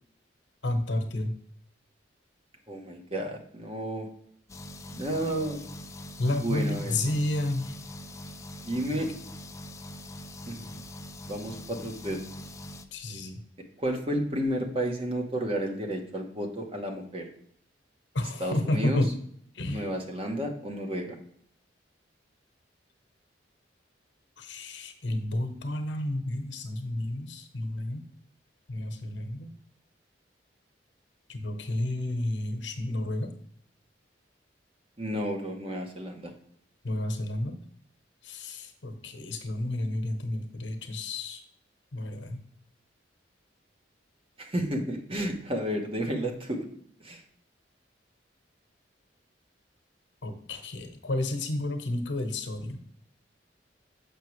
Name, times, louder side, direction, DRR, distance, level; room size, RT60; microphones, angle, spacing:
voice 1, 0.6-1.3 6.2-7.8 12.9-13.4 18.1-19.1 19.5-19.9 24.4-28.0 28.7-29.5 31.3-33.3 36.8-37.6 38.2-41.4 41.9-42.4 50.2-52.8, left 1 dB, 80° left, 6 dB, 1.0 m, -31 dB
voice 2, 2.7-4.1 5.0-5.7 6.4-7.0 8.7-9.1 10.5-10.8 11.3-12.2 13.8-17.3 18.4-19.0 19.7-21.2 35.0-36.3 44.4-46.7 47.0-47.2, right 1 dB, 30° right, 3 dB, 1.0 m, -31 dB
sound 1, 4.5-12.9, left 1 dB, 15° left, 0.4 m, -43 dB
6.7 x 5.9 x 3.1 m, 0.65 s
head